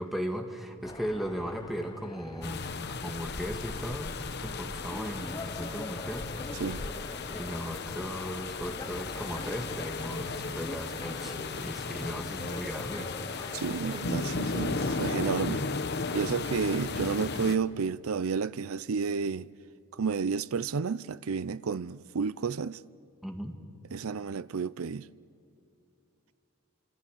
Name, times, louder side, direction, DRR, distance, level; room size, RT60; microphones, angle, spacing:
voice 1, 0.0-2.7 3.0-6.3 7.3-13.1 23.2-23.6, equal, ahead, 1.9 m, -37 dB
sound 1, 0.8-15.3, left 2 dB, 20° left, 0.6 m, -44 dB
sound 2, 2.4-17.6, left 4 dB, 50° left, 0.9 m, -35 dB
voice 2, 13.5-15.6 16.1-19.5 19.9-22.8 23.9-25.0, right 5 dB, 80° right, 0.5 m, -31 dB
29.0 x 26.5 x 7.3 m
head